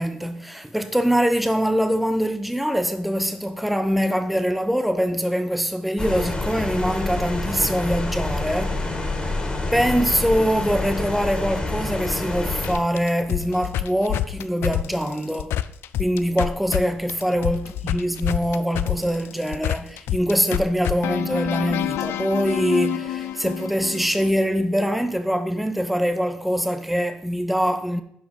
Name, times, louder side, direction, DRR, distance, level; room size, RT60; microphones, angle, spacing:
voice 1, 0.0-8.8 9.7-15.5 16.0-28.0, equal, ahead, 0.8 m, -23 dB
sound 1, 6.0-12.8, left 2 dB, 20° left, 2.3 m, -27 dB
sound 2, 12.5-16.8 17.1-24.3, left 13 dB, 80° left, 0.4 m, -27 dB
11.0 x 5.1 x 4.6 m
supercardioid pair, 75°, 4 cm